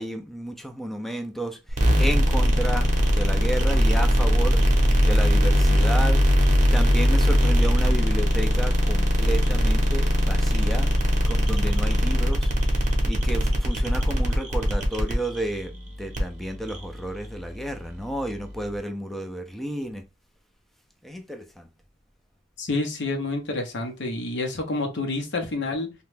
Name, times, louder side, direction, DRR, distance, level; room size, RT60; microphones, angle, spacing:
voice 1, 0.0-6.2 6.7-10.9 11.3-20.0 21.0-21.7, right 1 dB, ahead, 0.4 m, -32 dB
sound 1, 1.7-18.8, equal, 40° right, 0.8 m, -21 dB
voice 2, 22.6-25.9, left 2 dB, 60° left, 0.7 m, -28 dB
2.9 x 2.2 x 3.2 m
head